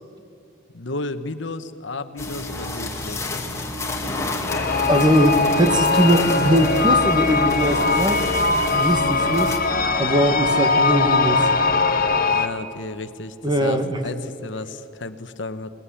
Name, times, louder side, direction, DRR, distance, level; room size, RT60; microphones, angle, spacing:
voice 1, 0.7-3.3 12.3-15.7, left 2 dB, 65° left, 11 dB, 1.1 m, -33 dB
sound 1, 2.2-9.6, left 1 dB, 15° left, 2.1 m, -28 dB
sound 2, 4.5-12.5, left 4 dB, 45° left, 1.1 m, -21 dB
voice 2, 4.9-8.2 8.7-9.6 10.0-11.5 13.4-14.0, equal, 20° right, 6 dB, 1.7 m, -20 dB
21.0 x 20.0 x 9.9 m, 2.6 s
head